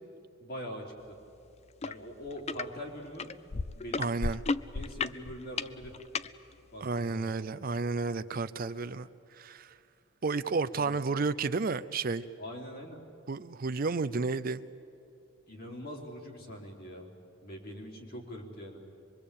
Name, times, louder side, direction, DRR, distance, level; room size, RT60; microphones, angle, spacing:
voice 1, 0.4-1.2 1.8-3.3 3.7-4.1 4.7-5.9 6.7-7.3 10.7-11.0 12.4-13.0 15.5-17.1 17.4-18.8, equal, 50° left, 0 dB, 3.8 m, -43 dB
sound 1, 1.8-1.9 2.3-2.6 3.2-6.3 7.0-7.1, left 4 dB, 30° left, 0.5 m, -33 dB
voice 2, 4.0-4.4 6.8-9.7 10.2-12.2 13.3-14.6, right 4 dB, 45° right, 13 dB, 0.5 m, -32 dB
24.5 x 23.0 x 8.5 m, 2.8 s
head